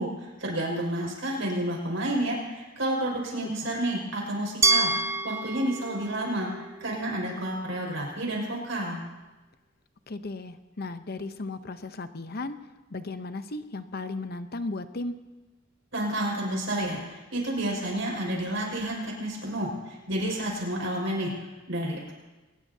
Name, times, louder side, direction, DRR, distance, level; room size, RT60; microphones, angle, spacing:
voice 1, 0.0-4.9 5.2-9.0 15.9-21.3 21.7-22.1, right 1 dB, 75° right, -2 dB, 5.6 m, -30 dB
Glass, 4.6-7.5, right 3 dB, 15° right, 0.4 m, -28 dB
voice 2, 10.1-12.6 12.9-15.2, left 2 dB, 50° left, 10 dB, 0.8 m, -35 dB
23.0 x 19.5 x 2.8 m, 1.1 s
head